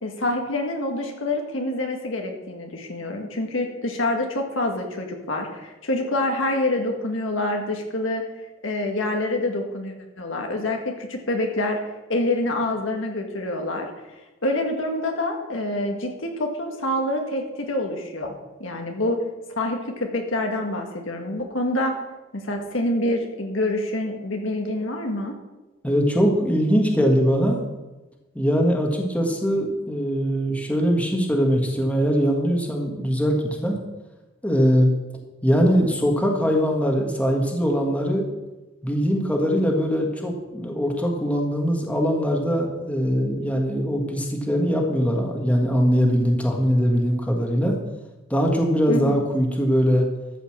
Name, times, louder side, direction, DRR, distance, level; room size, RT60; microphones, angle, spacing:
voice 1, 0.0-8.2 8.6-11.8 12.1-13.9 14.4-18.3 18.6-19.2 19.6-22.0 22.3-25.3 48.9-49.2, left 1 dB, 75° left, 2 dB, 1.8 m, -26 dB
voice 2, 25.8-27.6 28.3-33.8 34.4-34.9 35.4-38.2 38.8-47.7 48.3-50.1, equal, 5° left, 1 dB, 1.6 m, -21 dB
13.5 x 5.6 x 7.3 m, 1.1 s
head